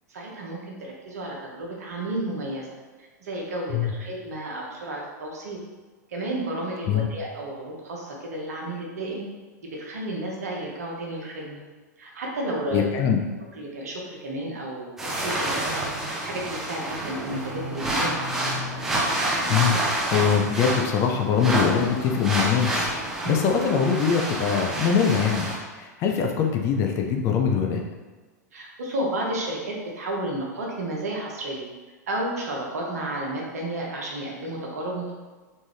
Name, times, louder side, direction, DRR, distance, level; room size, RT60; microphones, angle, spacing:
voice 1, 0.1-2.7 3.2-5.6 6.1-9.2 9.6-11.6 12.0-12.8 13.5-15.8 16.2-18.2 23.2-23.4 28.5-31.6 32.1-35.1, right 1 dB, 60° right, -2 dB, 0.9 m, -32 dB
voice 2, 12.7-13.2 19.5-22.9 23.3-27.8, left 7 dB, 30° left, 2 dB, 0.4 m, -23 dB
sound 1, 15.0-25.5, right 1 dB, 5° right, 0.8 m, -28 dB
3.5 x 2.5 x 3.3 m, 1.3 s
figure-of-eight pair, 95°, 9 cm